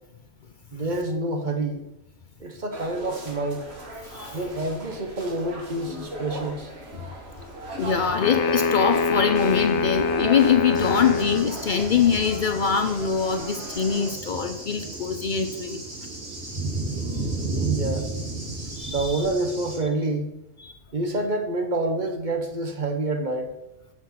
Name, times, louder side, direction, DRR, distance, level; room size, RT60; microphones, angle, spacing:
voice 1, 0.7-1.8 2.4-3.7 4.3-6.7 17.5-18.1 18.9-20.3 20.9-23.5, right 2 dB, 45° right, 4 dB, 1.1 m, -27 dB
sound 1, 2.7-14.1, right 1 dB, 65° right, 1.9 m, -38 dB
voice 2, 7.8-15.8 18.7-19.2 20.6-20.7, left 6 dB, 50° left, 7 dB, 0.7 m, -23 dB
sound 2, 8.2-11.6, left 4 dB, 90° left, 0.9 m, -24 dB
Cricket / Thunder, 10.7-19.8, right 3 dB, 80° right, 2.9 m, -33 dB
7.8 x 5.9 x 5.7 m, 0.88 s
omnidirectional pair, 1.2 m